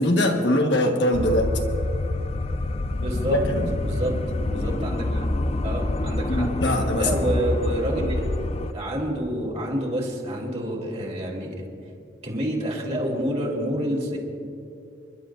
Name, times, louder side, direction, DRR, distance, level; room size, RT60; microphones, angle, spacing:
voice 1, 0.0-1.5 3.3-3.7 6.3-7.3, left 1 dB, 65° left, 2 dB, 1.4 m, -22 dB
sound 1, 1.1-8.7, left 2 dB, 35° left, 0.5 m, -27 dB
voice 2, 3.0-3.4 3.8-4.1 4.5-5.2 5.6-6.5 7.0-8.3 8.7-11.7 12.2-14.2, equal, 35° right, -1 dB, 3.0 m, -28 dB
29.5 x 12.0 x 2.6 m, 2.5 s
head